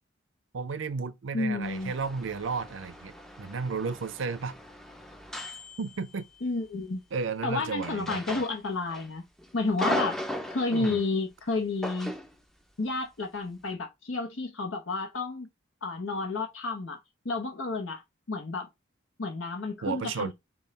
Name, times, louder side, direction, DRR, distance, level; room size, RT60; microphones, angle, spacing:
voice 1, 0.5-4.6 5.8-6.3 7.1-8.4 10.7-11.0 19.8-20.3, right 4 dB, 70° right, 0.5 m, -33 dB
voice 2, 1.3-1.9 6.4-7.0 7.4-9.2 9.5-10.2 10.5-12.1 12.8-15.5 15.8-17.0 17.2-18.0 18.3-18.7 19.2-20.3, left 3 dB, 80° left, 1.0 m, -31 dB
sound 1, 1.6-6.6 7.8-9.1 9.4-11.1 11.8-12.3, equal, ahead, 0.4 m, -37 dB
5.4 x 2.4 x 4.1 m
head